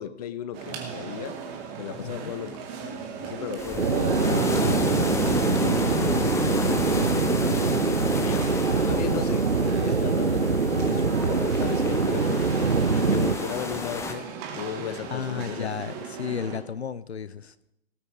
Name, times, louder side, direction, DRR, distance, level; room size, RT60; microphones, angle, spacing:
voice 1, 0.0-1.4 1.8-8.5 8.9-12.4 12.9-15.7, left 9 dB, 35° left, 0.8 m, -36 dB
sound 1, 0.5-16.6, right 5 dB, 30° right, 2.4 m, -37 dB
voice 2, 2.0-2.3 15.1-17.5, left 7 dB, 75° left, 0.6 m, -33 dB
sound 2, 3.6-14.1, left 3 dB, 10° left, 1.1 m, -32 dB
sound 3, 3.8-13.3, right 4 dB, 90° right, 0.7 m, -24 dB
18.5 x 8.7 x 5.0 m
figure-of-eight pair, 115°, 33 cm